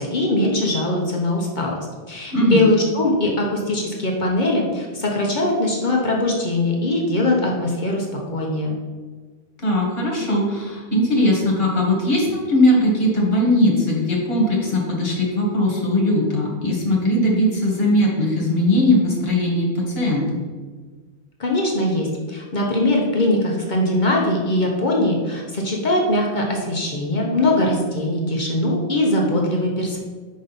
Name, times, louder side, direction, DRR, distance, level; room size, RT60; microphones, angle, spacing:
voice 1, 0.0-1.7 2.1-8.8 21.4-30.0, left 1 dB, 50° left, -1 dB, 1.0 m, -21 dB
voice 2, 2.3-2.6 9.6-20.4, left 1 dB, 65° left, -2 dB, 1.8 m, -19 dB
5.3 x 5.3 x 4.0 m, 1.4 s
omnidirectional pair, 1.1 m